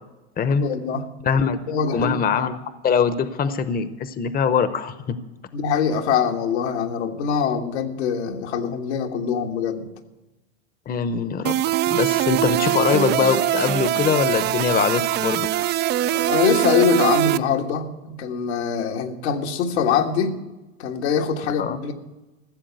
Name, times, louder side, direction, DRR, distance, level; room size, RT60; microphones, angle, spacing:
voice 1, 0.6-1.0 1.3-2.2 5.5-9.9 16.1-20.4 20.8-21.9, left 7 dB, 80° left, 3 dB, 1.6 m, -23 dB
voice 2, 1.2-1.6 1.9-2.6 2.8-5.2 10.9-11.5 11.9-15.5 21.6-21.8, left 6 dB, 25° left, 13 dB, 0.8 m, -22 dB
sound 1, 11.4-17.4, right 14 dB, 35° right, 0.4 m, -22 dB
14.5 x 7.3 x 9.3 m, 1.1 s
hypercardioid pair, 95°, 33 cm